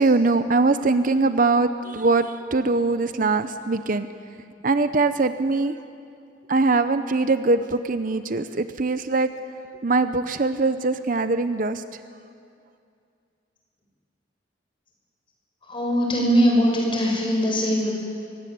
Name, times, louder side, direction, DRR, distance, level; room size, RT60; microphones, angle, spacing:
voice 1, 0.0-4.1 4.6-5.7 6.5-9.3 9.8-11.8, right 3 dB, 45° right, 11 dB, 0.7 m, -22 dB
voice 2, 15.7-17.9, equal, 25° left, -1 dB, 5.6 m, -21 dB
23.5 x 17.5 x 9.5 m, 2.4 s
head